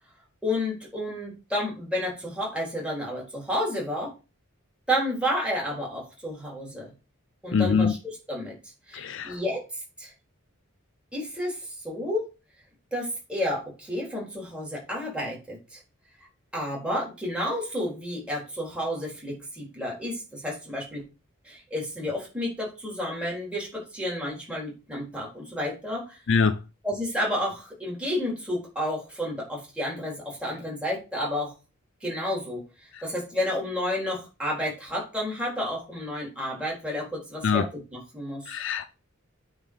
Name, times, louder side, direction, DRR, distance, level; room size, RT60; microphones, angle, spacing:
voice 1, 0.4-4.1 4.9-6.9 7.4-8.5 8.9-9.7 10.0-10.1 11.1-12.3 12.9-15.8 16.5-21.0 21.4-26.2 26.8-31.5 32.0-32.6 33.0-38.5, left 1 dB, 5° right, 3.7 m, -31 dB
voice 2, 7.5-7.9 8.9-9.4 26.3-26.6 32.9-33.0 37.4-37.6 38.5-38.9, left 5 dB, 60° left, 0.5 m, -23 dB
9.0 x 4.0 x 5.2 m
head